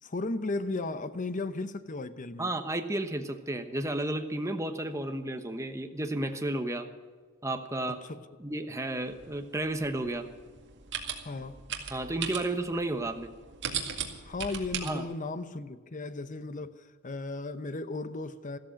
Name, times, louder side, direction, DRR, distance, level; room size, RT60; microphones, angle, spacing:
voice 1, 0.0-2.5 7.9-8.2 11.2-11.6 14.3-18.6, left 2 dB, 35° left, 0.8 m, -35 dB
voice 2, 2.4-6.9 7.4-8.0 8.4-10.3 11.9-13.3 14.8-15.1, right 1 dB, 15° right, 1.1 m, -32 dB
sound 1, 9.1-14.9, right 7 dB, 55° right, 2.1 m, -38 dB
14.5 x 13.0 x 6.4 m
head